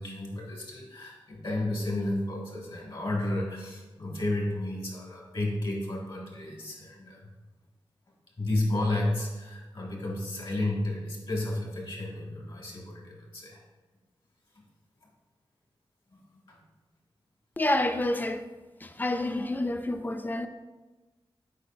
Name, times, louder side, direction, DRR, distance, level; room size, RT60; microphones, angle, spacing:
voice 1, 0.0-7.2 8.4-13.6 16.5-16.6, left 1 dB, 60° left, 1.8 m, -32 dB
voice 2, 17.6-18.5 18.8-20.5, left 1 dB, 20° left, 0.4 m, -28 dB
8.2 x 4.8 x 2.5 m
wide cardioid pair, 85°, 9 cm